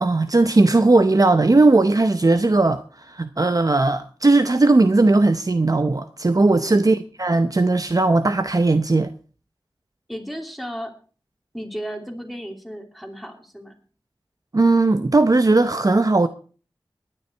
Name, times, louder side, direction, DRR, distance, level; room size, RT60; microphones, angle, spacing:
voice 1, 0.0-9.1 14.5-16.3, right 2 dB, 45° right, 0.7 m, -18 dB
voice 2, 6.5-6.8 10.1-10.9 11.5-13.8, equal, ahead, 2.9 m, -34 dB
18.5 x 10.0 x 4.5 m
wide cardioid pair, 60°, 9 cm